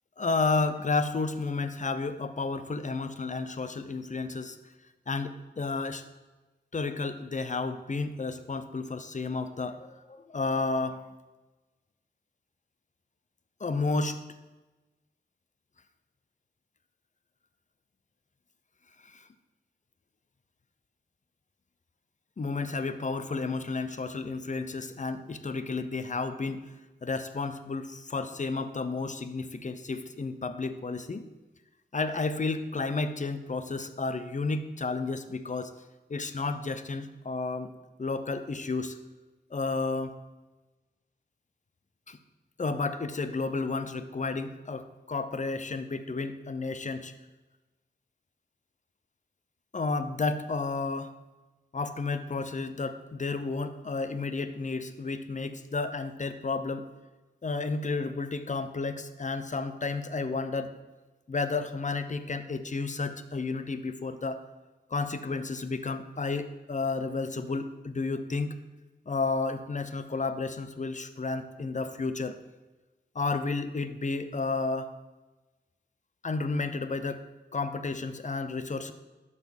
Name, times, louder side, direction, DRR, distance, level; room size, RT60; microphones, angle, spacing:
voice 1, 0.2-4.6 5.1-6.0 6.7-11.1 13.6-14.2 19.0-19.2 22.4-26.6 27.0-31.3 31.9-35.7 36.1-37.7 38.0-39.0 39.5-40.1 42.1-42.2 42.6-47.1 49.7-51.1 51.7-56.9 57.4-60.7 61.3-64.4 64.9-68.5 69.1-72.4 73.1-74.9 76.2-77.2 77.5-78.9, left 3 dB, 40° left, 11 dB, 0.7 m, -32 dB
12.0 x 4.2 x 7.1 m, 1.2 s
wide cardioid pair, 75°, 19 cm